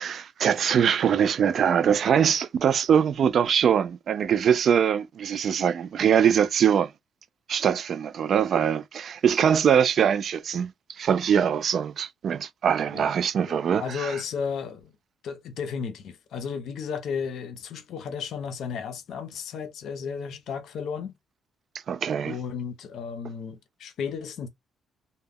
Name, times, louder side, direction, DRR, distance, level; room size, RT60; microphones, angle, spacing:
voice 1, 0.0-6.9 7.5-10.7 11.0-14.1 21.9-22.4, right 8 dB, 60° right, 0.3 m, -22 dB
voice 2, 13.4-15.0 15.2-21.1 22.2-24.5, left 6 dB, 75° left, 0.6 m, -34 dB
2.2 x 2.1 x 3.4 m
cardioid pair, 90°, 0 cm